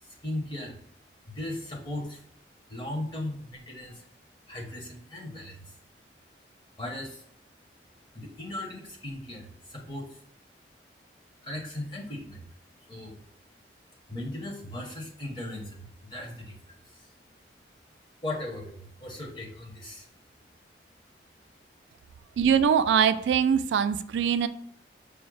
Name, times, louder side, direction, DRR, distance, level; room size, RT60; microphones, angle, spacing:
voice 1, 0.0-0.8 1.3-2.2 2.7-4.0 4.5-5.7 6.8-7.2 8.1-10.2 11.4-12.4 12.9-13.2 14.1-17.1 18.2-20.1, left 1 dB, 25° left, -1 dB, 0.9 m, -37 dB
voice 2, 22.4-24.5, right 7 dB, 90° right, 11 dB, 0.3 m, -22 dB
4.9 x 2.1 x 4.7 m, 0.65 s
head